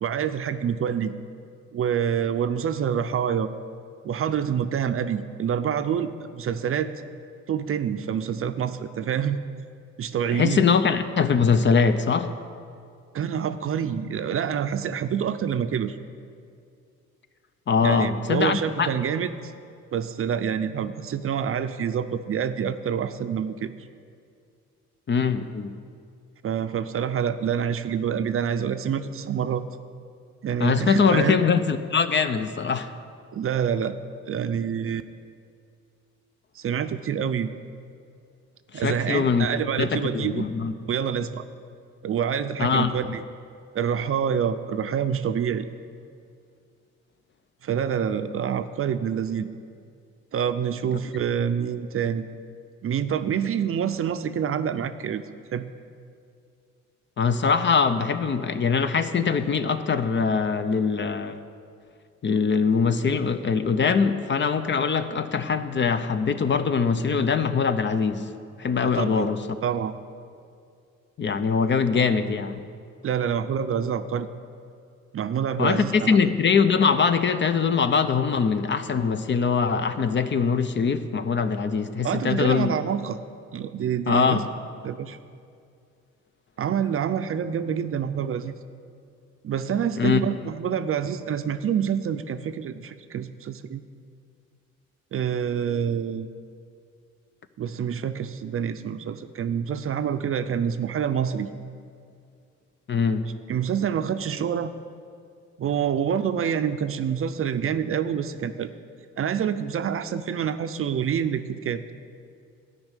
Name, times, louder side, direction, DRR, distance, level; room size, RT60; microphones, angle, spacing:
voice 1, 0.0-1.1 1.7-3.5 4.0-6.9 7.5-9.4 10.0-10.6 13.1-16.0 17.8-19.3 19.9-23.7 26.4-29.6 30.4-31.4 33.3-34.0 34.3-35.0 36.6-37.5 38.7-40.5 40.8-41.4 42.0-43.2 43.7-45.7 47.6-49.5 50.3-52.3 52.8-55.2 55.5-55.7 68.8-69.3 69.6-70.0 73.0-74.3 75.1-76.2 82.0-83.2 83.5-84.4 84.8-85.2 86.6-88.6 89.4-93.8 95.1-96.3 97.6-101.5 103.5-104.7 105.6-108.7 109.2-111.8, right 8 dB, 45° right, 11 dB, 0.5 m, -27 dB
voice 2, 10.3-12.3 17.7-18.9 25.1-25.7 30.6-32.9 38.7-39.5 39.8-40.7 42.6-42.9 57.2-61.4 62.2-68.3 68.6-69.4 71.2-72.6 75.6-82.7 84.1-84.5 90.0-90.2 102.9-103.3, left 5 dB, 40° left, 10 dB, 0.6 m, -22 dB
12.0 x 5.4 x 9.0 m, 2.3 s
cardioid pair, 90°, 30 cm